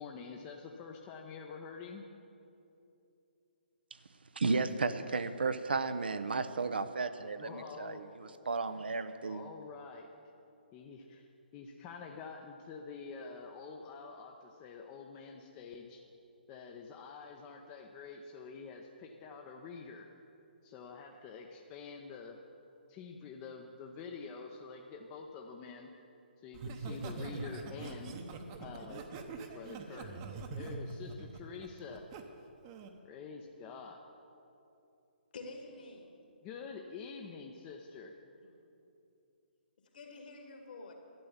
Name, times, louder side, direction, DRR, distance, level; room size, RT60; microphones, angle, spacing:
voice 1, 0.0-2.1 7.4-8.0 9.2-10.1 10.7-11.3 11.5-16.0 16.5-20.1 20.6-22.4 22.9-25.9 26.4-28.1 28.6-29.1 29.5-32.1 33.0-34.0 36.4-38.1, left 5 dB, 25° left, 2 dB, 0.7 m, -47 dB
voice 2, 4.4-9.5, right 4 dB, 70° right, 11 dB, 0.7 m, -34 dB
Laughter, 26.5-32.2 32.6-33.0, right 3 dB, 30° right, 1.0 m, -43 dB
voice 3, 35.3-36.2 38.4-38.5 39.8-40.9, left 3 dB, 55° left, 3 dB, 2.1 m, -48 dB
12.0 x 9.7 x 7.3 m, 2.8 s
figure-of-eight pair, 135°, 6 cm